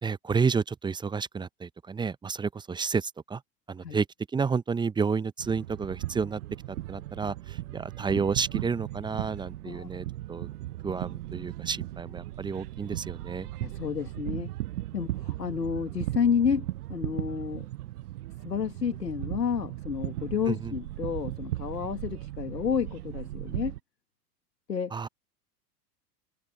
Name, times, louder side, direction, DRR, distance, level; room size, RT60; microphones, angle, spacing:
voice 1, 0.0-3.4 3.7-4.1 4.3-6.4 6.7-10.5 10.8-13.5 20.5-20.7 24.9-25.1, right 5 dB, 10° right, 0.7 m, -30 dB
sound 1, 5.4-23.8, right 15 dB, 70° right, 0.7 m, -37 dB
voice 2, 13.6-14.5 14.9-17.7 18.4-23.7 24.7-24.9, left 7 dB, 85° left, 2.2 m, -30 dB
open air
hypercardioid pair, 95°, 48 cm